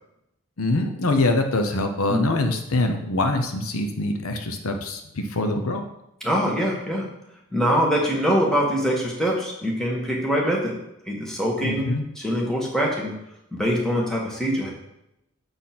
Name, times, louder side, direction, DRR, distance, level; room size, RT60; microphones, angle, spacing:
voice 1, 0.6-5.9 11.6-12.0, left 2 dB, 75° left, 5 dB, 0.8 m, -24 dB
voice 2, 6.2-7.1 7.5-10.7 11.1-11.9 12.2-13.1 13.5-14.7, equal, ahead, -2 dB, 1.5 m, -23 dB
7.0 x 4.2 x 5.9 m, 0.84 s
head